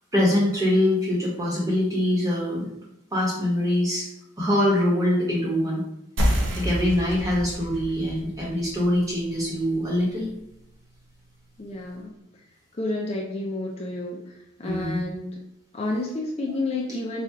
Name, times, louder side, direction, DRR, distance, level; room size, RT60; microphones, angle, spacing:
voice 1, 0.1-2.7 3.1-4.1 4.4-5.8 6.6-10.3 14.6-15.0, left 1 dB, 15° right, -5 dB, 1.1 m, -23 dB
sound 1, 6.2-11.3, equal, 70° right, 0.7 m, -30 dB
voice 2, 11.6-12.1 12.8-15.4 15.7-17.2, left 2 dB, 30° left, -1 dB, 0.4 m, -30 dB
4.3 x 2.3 x 3.5 m, 0.82 s
head